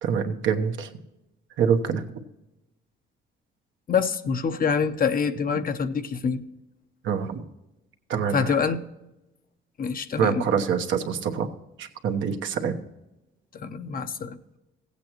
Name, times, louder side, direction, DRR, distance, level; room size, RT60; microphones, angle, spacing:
voice 1, 0.0-0.9 1.6-2.0 7.0-7.4 8.1-8.7 10.2-11.5 11.8-12.8, right 7 dB, 75° right, 4 dB, 1.2 m, -25 dB
voice 2, 3.9-6.4 8.3-8.8 9.8-10.4 13.5-14.4, left 6 dB, 45° left, 9 dB, 0.8 m, -26 dB
16.0 x 8.3 x 3.0 m, 0.96 s
cardioid pair, 90°, 20 cm